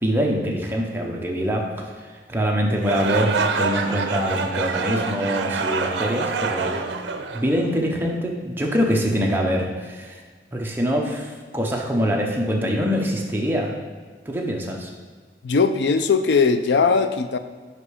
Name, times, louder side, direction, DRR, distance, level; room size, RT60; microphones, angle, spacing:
voice 1, 0.0-1.7 2.0-6.8 7.3-10.2 10.5-13.7 14.3-14.9, equal, 10° right, -1 dB, 0.7 m, -24 dB
sound 1, 2.8-8.0, right 4 dB, 80° right, 0.5 m, -26 dB
voice 2, 15.4-17.4, left 5 dB, 75° left, 10 dB, 0.4 m, -19 dB
5.3 x 5.0 x 5.0 m, 1.5 s
head